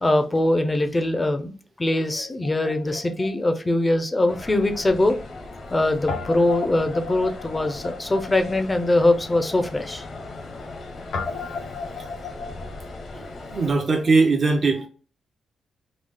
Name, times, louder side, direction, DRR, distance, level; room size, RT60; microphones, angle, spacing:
voice 1, 0.0-1.5 1.8-5.2 5.7-10.0, left 1 dB, 20° left, 0.6 m, -22 dB
Guitar, 2.4-4.8 5.1-5.2 6.1-13.9, left 5 dB, 85° left, 0.8 m, -37 dB
sound 1, 4.3-13.7, left 2 dB, 55° left, 0.9 m, -39 dB
voice 2, 13.5-14.9, right 3 dB, 40° right, 0.7 m, -20 dB
3.9 x 2.3 x 3.4 m
cardioid pair, 105°, 0 cm